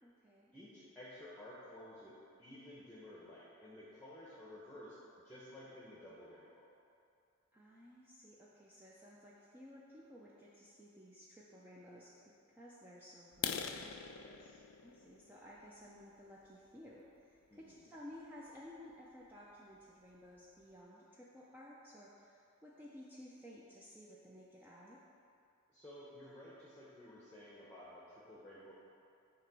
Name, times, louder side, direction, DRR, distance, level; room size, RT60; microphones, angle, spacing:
voice 1, 0.0-0.5 7.5-13.9 14.8-25.0, left 1 dB, 10° right, -6 dB, 0.5 m, -55 dB
voice 2, 0.5-5.0 5.2-6.6 14.2-14.6 17.5-17.9 25.7-28.7, left 1 dB, 10° left, -7 dB, 0.9 m, -54 dB
sound 1, 13.3-17.1 17.6-17.8 18.3-18.4 18.8-18.9 19.3-19.4 19.8-19.9 20.1-20.6, left 8 dB, 65° left, 0.4 m, -44 dB
7.4 x 3.0 x 6.0 m, 2.5 s
head